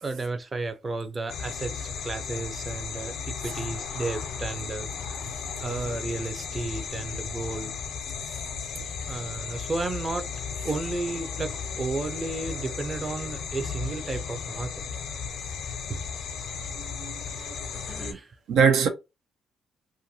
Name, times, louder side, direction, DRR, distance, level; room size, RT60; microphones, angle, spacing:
voice 1, 0.0-5.3 5.6-7.7 9.1-10.3 10.6-14.8 15.9-16.0 17.3-17.4 17.7-18.4, right 3 dB, 30° right, 0.6 m, -33 dB
sound 1, 1.3-18.1, left 6 dB, 75° left, 0.6 m, -35 dB
voice 2, 16.8-17.8 18.5-18.9, right 6 dB, 85° right, 0.6 m, -24 dB
2.6 x 2.5 x 2.7 m
cardioid pair, 90°, 0 cm